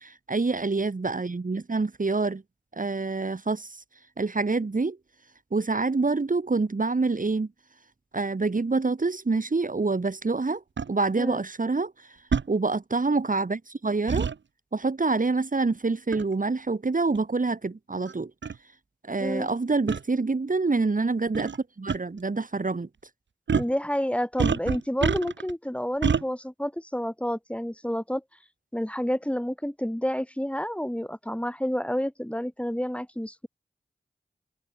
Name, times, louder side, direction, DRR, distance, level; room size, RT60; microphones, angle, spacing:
voice 1, 0.0-2.4 2.7-3.8 4.2-5.0 5.5-7.5 8.1-10.6 10.9-12.2 12.5-14.3 14.7-18.3 19.0-22.9, right 3 dB, 45° right, 2.4 m, -26 dB
sound 1, 10.8-10.9 12.3-12.5 14.1-14.3 16.1-16.3 17.1-17.2 18.1-18.2 18.4-18.6 19.9-20.0 21.3-21.6 21.9-22.0 23.5-23.7 24.4-25.5 26.0-26.2, right 6 dB, 80° right, 2.5 m, -26 dB
voice 2, 19.2-19.5 23.5-28.2 28.7-33.5, equal, 5° left, 4.8 m, -29 dB
cardioid pair, 40°, 19 cm